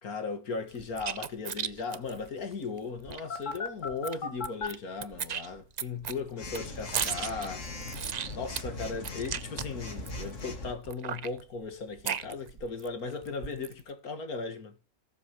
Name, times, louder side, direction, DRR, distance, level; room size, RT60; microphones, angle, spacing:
voice 1, 0.0-7.7 8.3-14.8, left 4 dB, 75° left, 2.2 m, -37 dB
sound 1, 0.7-3.2 3.5-3.6 3.9-4.8 5.0-10.4 10.9-12.9 13.2-13.8, right 7 dB, 75° right, 0.3 m, -36 dB
Telephone, 3.3-4.7 6.4-10.7, left 3 dB, 55° left, 2.4 m, -38 dB
18.5 x 7.6 x 3.1 m
omnidirectional pair, 1.6 m